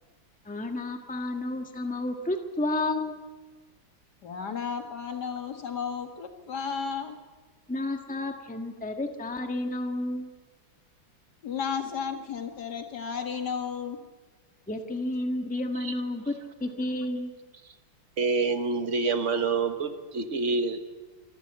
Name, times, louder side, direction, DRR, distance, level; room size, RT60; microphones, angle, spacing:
voice 1, 0.4-3.2 7.7-10.3 14.7-16.3 16.6-17.3, left 2 dB, 5° left, 4 dB, 1.4 m, -31 dB
voice 2, 4.2-7.1 11.4-14.0, left 6 dB, 60° left, 5 dB, 2.5 m, -33 dB
voice 3, 18.2-20.8, right 4 dB, 40° right, 8 dB, 1.7 m, -27 dB
26.0 x 13.0 x 8.9 m, 1.3 s
omnidirectional pair, 2.0 m